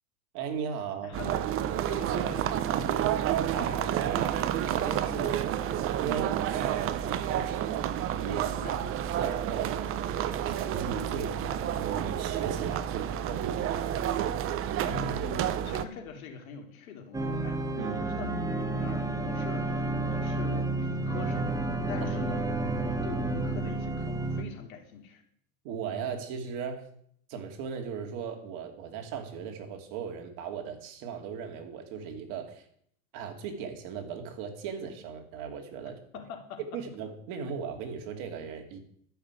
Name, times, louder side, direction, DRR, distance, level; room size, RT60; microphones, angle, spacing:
voice 1, 0.3-1.2 2.1-2.8 3.5-5.3 5.6-7.9 8.2-8.8 9.0-14.0 17.7-18.0 25.6-26.9 27.3-32.6 33.1-36.0 36.7-38.8, right 7 dB, 50° right, 5 dB, 2.8 m, -37 dB
voice 2, 1.0-1.4 1.9-3.2 5.1-5.4 8.6-8.8 14.8-25.2 35.8-36.8, left 6 dB, 75° left, 3 dB, 3.3 m, -43 dB
sound 1, 1.1-15.8, right 10 dB, 30° right, 0.8 m, -30 dB
sound 2, 17.1-24.4, right 2 dB, 10° right, 1.0 m, -30 dB
12.5 x 6.6 x 9.0 m, 0.64 s
supercardioid pair, 135°, 42 cm